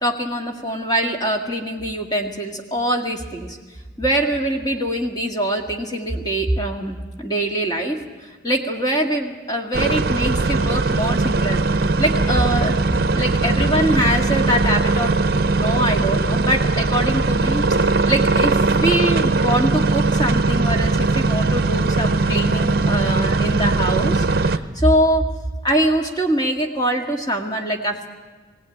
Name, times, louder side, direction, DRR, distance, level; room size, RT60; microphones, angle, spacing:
voice 1, 0.0-3.6 4.0-12.8 13.1-25.2 25.6-28.1, right 1 dB, 20° left, 1 dB, 1.9 m, -23 dB
sound 1, 9.7-24.6, right 3 dB, 50° right, 0.7 m, -19 dB
21.0 x 17.0 x 9.1 m, 1.4 s
head